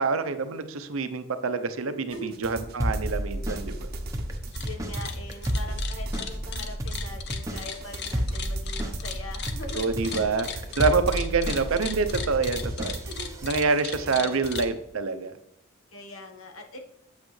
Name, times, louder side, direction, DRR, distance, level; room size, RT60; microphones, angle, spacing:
voice 1, 0.0-3.7 9.8-10.5 10.8-13.0 13.4-15.3, right 4 dB, 80° right, 10 dB, 0.7 m, -26 dB
sound 1, 2.1-14.6, right 2 dB, 50° right, 0.8 m, -41 dB
sound 2, 2.8-13.5, equal, 15° right, 0.8 m, -32 dB
sound 3, 4.4-4.7 4.9-14.7, left 8 dB, 55° left, 0.6 m, -37 dB
voice 2, 4.6-10.0 13.0-13.4 14.0-14.5 15.9-16.8, left 1 dB, 80° left, 4 dB, 1.2 m, -42 dB
8.4 x 7.4 x 3.2 m, 0.77 s
head